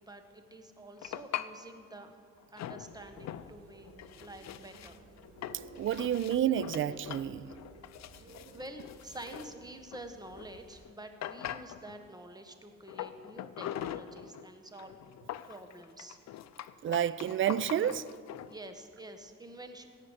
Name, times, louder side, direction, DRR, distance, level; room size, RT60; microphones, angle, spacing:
voice 1, 0.0-2.2 2.5-3.9 4.2-5.0 8.0-15.0 15.5-16.2 18.5-19.9, right 1 dB, 15° right, 1.3 m, -48 dB
sound 1, 1.0-1.5 2.6-3.5 3.8-10.5 10.8-10.9 11.2-12.1 12.9-14.5 14.8-18.5, left 11 dB, 60° left, 0.5 m, -42 dB
sound 2, 2.8-10.8, right 1 dB, 75° right, 3.2 m, -54 dB
voice 2, 5.8-7.5 16.8-18.0, right 10 dB, 40° right, 0.5 m, -29 dB
16.5 x 5.9 x 7.9 m
cardioid pair, 90°, 30 cm